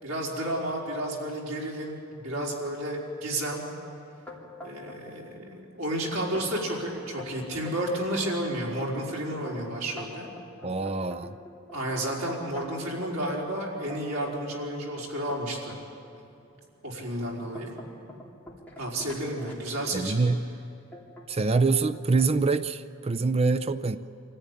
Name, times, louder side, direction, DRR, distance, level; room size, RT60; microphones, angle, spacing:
voice 1, 0.0-3.7 4.6-10.3 11.7-15.7 16.8-17.8 18.8-20.2, right 1 dB, 85° right, -3 dB, 4.6 m, -31 dB
sound 1, 4.3-5.2 5.5-6.0 6.3-6.5 6.9-8.1 8.6-12.9 13.3-15.8 16.4-16.6 17.1-20.1 20.9-21.3 21.6-22.3, left 1 dB, 10° left, 3.1 m, -44 dB
voice 2, 10.6-11.3 19.9-20.4 21.3-24.0, right 3 dB, 30° right, 12 dB, 0.5 m, -25 dB
25.0 x 14.5 x 9.8 m, 2.6 s
head